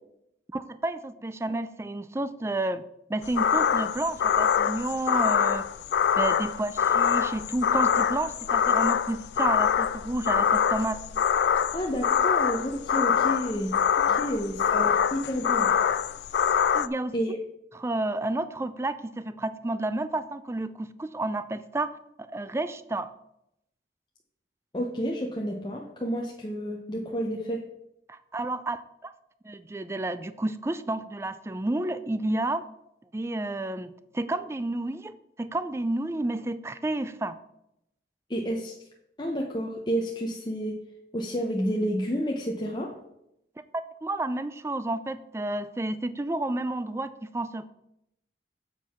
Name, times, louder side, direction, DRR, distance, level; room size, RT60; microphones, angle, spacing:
voice 1, 0.5-2.8 3.1-5.7 6.2-11.0 14.1-14.2 16.7-17.1 17.8-22.0 22.3-23.1 28.1-29.1 29.4-32.6 33.1-37.4 43.7-47.7, right 2 dB, 15° right, 13 dB, 0.3 m, -31 dB
sound 1, 3.2-16.9, left 8 dB, 75° left, 0.3 m, -24 dB
voice 2, 11.7-13.7 14.1-15.7 17.1-17.4 24.7-27.6 38.3-38.8 39.2-40.8 41.1-42.9, equal, 25° left, -1 dB, 0.7 m, -30 dB
7.6 x 4.6 x 5.7 m, 0.82 s
head